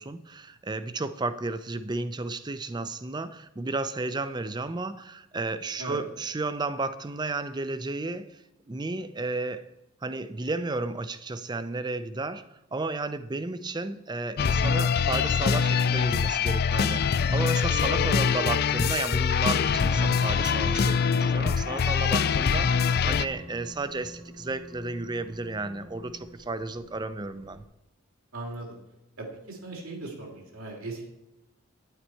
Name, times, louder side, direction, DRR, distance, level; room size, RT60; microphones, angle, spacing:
voice 1, 0.0-8.4 8.7-9.7 10.0-27.6, right 3 dB, 20° right, 12 dB, 0.5 m, -33 dB
sound 1, 14.4-23.3, left 6 dB, 45° left, 0.4 m, -24 dB
voice 2, 17.9-18.3 28.3-28.8 29.2-31.1, right 2 dB, 80° right, 0 dB, 2.8 m, -38 dB
sound 2, 19.5-27.6, right 1 dB, 60° right, 1.3 m, -46 dB
9.6 x 8.9 x 4.4 m, 0.94 s
head